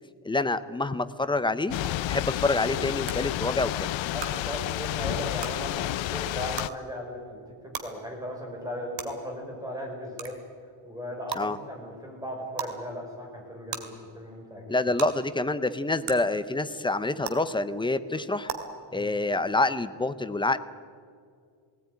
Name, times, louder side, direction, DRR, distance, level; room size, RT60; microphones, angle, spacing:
voice 1, 0.2-1.8 2.1-3.9 11.4-11.6 14.7-18.5 18.9-20.6, left 2 dB, 10° left, 12 dB, 0.5 m, -27 dB
Thunder / Rain, 1.7-6.7, left 16 dB, 75° left, 0.6 m, -30 dB
sound 1, 1.8-1.9 3.1-3.2 4.2-4.3 5.4-5.5 6.6-6.7 7.7-7.8 9.0-9.1 10.2-10.3 11.3-11.4 12.5-12.7 13.7-13.8 15.0-15.1 16.0-16.1 17.2-17.3 18.5-18.6, right 8 dB, 65° right, 2.4 m, -33 dB
voice 2, 4.1-7.4 7.8-10.3 10.8-14.8 18.9-19.1, equal, 10° right, 0 dB, 4.8 m, -37 dB
19.0 x 18.0 x 9.4 m, 2.2 s
cardioid pair, 170°, 46 cm